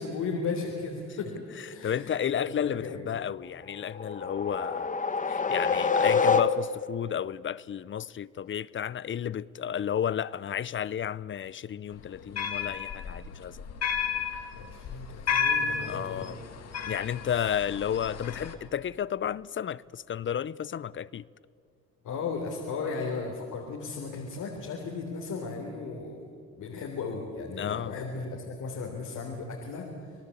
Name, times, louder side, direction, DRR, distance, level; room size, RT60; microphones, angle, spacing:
voice 1, 0.0-3.1 14.6-16.3 17.2-17.5 22.0-30.1, left 4 dB, 80° left, 3.7 m, -36 dB
voice 2, 1.6-4.9 5.3-13.6 15.9-16.4 16.9-21.2 27.6-28.0, left 9 dB, 40° left, 0.6 m, -32 dB
sound 1, 3.7-7.0, left 5 dB, 25° left, 1.2 m, -26 dB
sound 2, 12.0-18.5, left 6 dB, 55° left, 2.3 m, -32 dB
28.0 x 19.0 x 8.5 m
cardioid pair, 90°, 30 cm